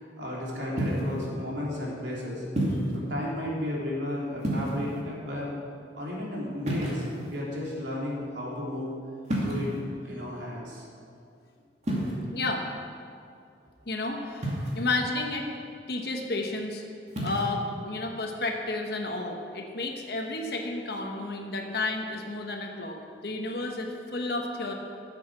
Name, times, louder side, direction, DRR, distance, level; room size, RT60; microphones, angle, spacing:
voice 1, 0.0-2.4 2.9-5.5 5.9-7.0 7.3-8.9 9.4-9.8 10.0-10.8, left 1 dB, 80° right, -4 dB, 3.4 m, -34 dB
sound 1, 0.8-1.2 2.6-3.0 4.4-5.0 6.6-7.4 9.3-9.8 11.8-12.1 14.4-14.9 17.1-17.5, right 1 dB, 35° right, 2.4 m, -29 dB
voice 2, 12.3-12.6 13.9-15.5 15.9-16.8 17.2-24.7, left 2 dB, 60° left, 2 dB, 1.2 m, -32 dB
14.0 x 8.1 x 6.2 m, 2.5 s
head